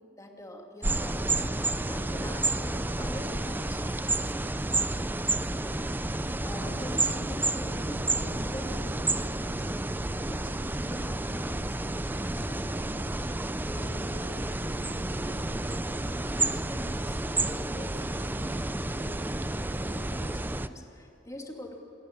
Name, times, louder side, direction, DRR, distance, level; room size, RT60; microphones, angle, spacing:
voice 1, 0.0-4.5 5.6-21.8, left 1 dB, 15° left, 1 dB, 2.5 m, -44 dB
sound 1, 0.8-20.7, right 2 dB, 10° right, 0.5 m, -30 dB
28.5 x 13.5 x 9.8 m, 2.7 s
head